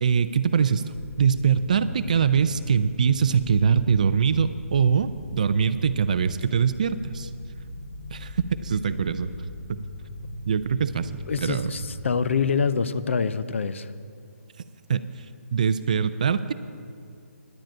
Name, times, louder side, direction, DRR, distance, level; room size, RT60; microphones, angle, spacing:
voice 1, 0.0-0.8 1.2-7.3 8.1-9.3 10.5-11.7 14.9-15.3 15.5-16.5, right 6 dB, 30° right, 12 dB, 0.3 m, -23 dB
sound 1, 0.9-12.1, left 1 dB, 40° left, 2.0 m, -38 dB
voice 2, 11.3-13.9, left 5 dB, 55° left, 13 dB, 0.5 m, -25 dB
10.5 x 7.5 x 8.8 m, 2.3 s
hypercardioid pair, 170°, 8 cm